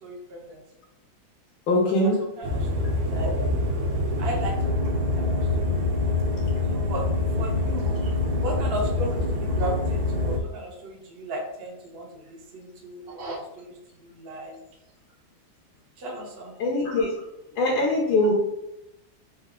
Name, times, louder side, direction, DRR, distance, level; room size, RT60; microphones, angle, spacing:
voice 1, 0.0-0.6 2.0-2.1 2.4-3.5 4.2-4.7 5.2-5.3 6.7-7.1 7.4-12.1 12.5-13.7 14.1-14.6 16.0-16.5, right 2 dB, 55° right, 0 dB, 0.6 m, -35 dB
voice 2, 1.7-2.2 16.6-17.1 17.6-18.3, left 1 dB, 90° left, -3 dB, 1.6 m, -22 dB
sound 1, 2.4-10.4, left 2 dB, 85° right, 1.6 m, -25 dB
4.4 x 2.4 x 3.6 m, 0.89 s
omnidirectional pair, 2.2 m